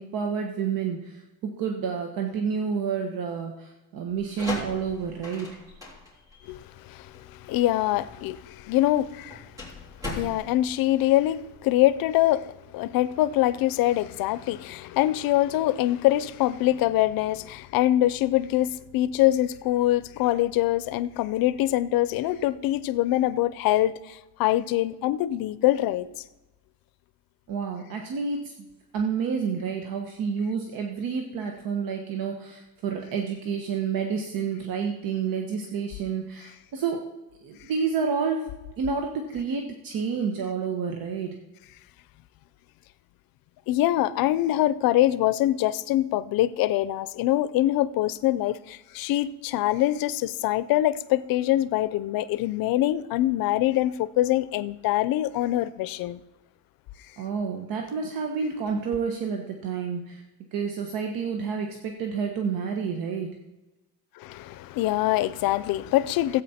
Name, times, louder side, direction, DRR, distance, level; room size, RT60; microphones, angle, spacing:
voice 1, 0.0-5.5 27.5-28.7 28.9-37.0 37.4-38.5 38.8-41.4 57.2-60.2 60.5-63.3, right 6 dB, 80° right, 1.2 m, -29 dB
sound 1, 4.1-11.7, left 2 dB, 10° right, 3.4 m, -40 dB
voice 2, 6.8-9.5 10.1-12.5 12.7-26.1 43.7-56.2 64.2-66.4, left 14 dB, 90° left, 0.6 m, -24 dB
15.0 x 8.4 x 4.3 m
cardioid pair, 155°, 34 cm